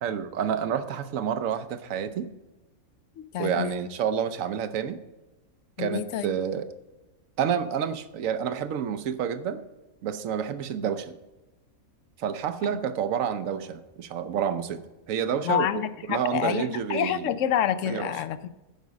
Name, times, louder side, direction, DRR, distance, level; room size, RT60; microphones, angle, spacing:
voice 1, 0.0-2.3 3.4-5.0 5.8-6.7 7.4-9.6 10.0-11.2 12.2-14.8 15.1-15.7 16.1-17.3 17.9-18.1, right 8 dB, 70° right, 11 dB, 1.1 m, -29 dB
voice 2, 3.2-3.9 5.8-6.4 10.8-10.9 12.7-12.8 15.4-18.5, left 10 dB, 70° left, 14 dB, 0.9 m, -28 dB
10.5 x 5.2 x 6.2 m, 1.1 s
omnidirectional pair, 1.5 m